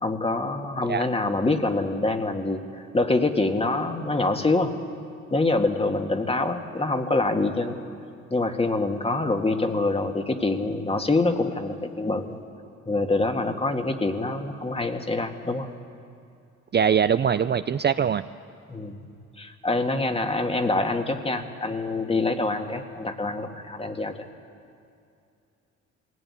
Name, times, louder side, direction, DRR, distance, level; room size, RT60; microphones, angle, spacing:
voice 1, 0.0-4.7 5.3-7.8 8.3-12.4 12.9-15.7 18.7-19.0 19.4-24.2, left 2 dB, 20° left, 5 dB, 1.9 m, -25 dB
voice 2, 16.7-18.2, right 7 dB, 35° right, 12 dB, 0.5 m, -22 dB
20.5 x 17.5 x 9.8 m, 2.5 s
cardioid pair, 90°, 30 cm